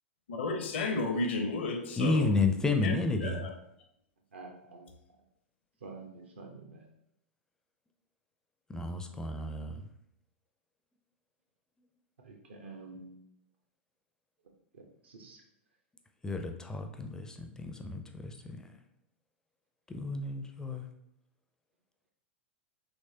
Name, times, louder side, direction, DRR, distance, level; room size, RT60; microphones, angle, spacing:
voice 1, 0.3-2.3 2.8-2.9 3.2-3.5, left 3 dB, 70° left, 0.6 m, -32 dB
voice 2, 2.0-3.4 8.7-9.8 16.2-18.6 19.9-20.9, left 3 dB, 10° left, 0.4 m, -31 dB
voice 3, 4.3-4.9 5.8-6.8 12.2-13.1 14.7-15.4, right 3 dB, 75° right, 0.8 m, -48 dB
3.3 x 3.0 x 2.7 m
figure-of-eight pair, 95°, 6 cm